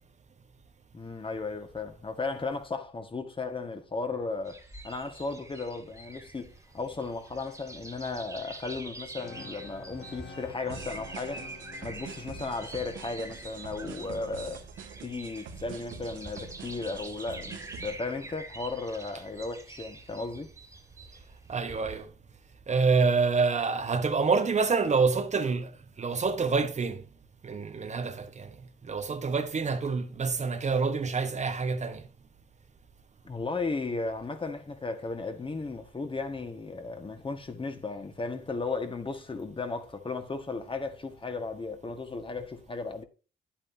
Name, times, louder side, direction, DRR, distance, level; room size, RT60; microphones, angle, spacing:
voice 1, 0.9-11.5 11.8-14.6 15.0-20.5 33.2-43.0, left 3 dB, 25° left, 1.5 m, -35 dB
sound 1, 4.5-22.0, right 2 dB, 15° right, 2.1 m, -46 dB
sound 2, 9.2-15.1, left 3 dB, 60° left, 2.5 m, -50 dB
sound 3, 10.7-18.0, right 6 dB, 75° right, 1.9 m, -45 dB
voice 2, 21.5-22.1 22.7-27.0 27.4-28.5 28.8-32.0, right 4 dB, 35° right, 1.1 m, -27 dB
10.0 x 8.7 x 2.7 m
cardioid pair, 90°, 20 cm